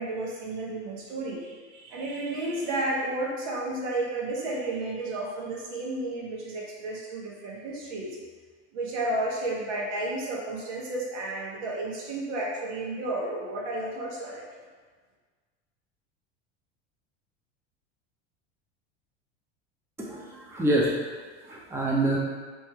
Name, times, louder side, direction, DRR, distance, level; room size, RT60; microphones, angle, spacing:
voice 1, 0.0-8.2 8.7-14.4, right 2 dB, 75° right, -3 dB, 1.3 m, -32 dB
voice 2, 20.0-20.9 21.5-22.2, right 1 dB, 5° right, -4 dB, 0.7 m, -26 dB
3.4 x 3.3 x 4.4 m, 1.4 s
supercardioid pair, 110°, 34 cm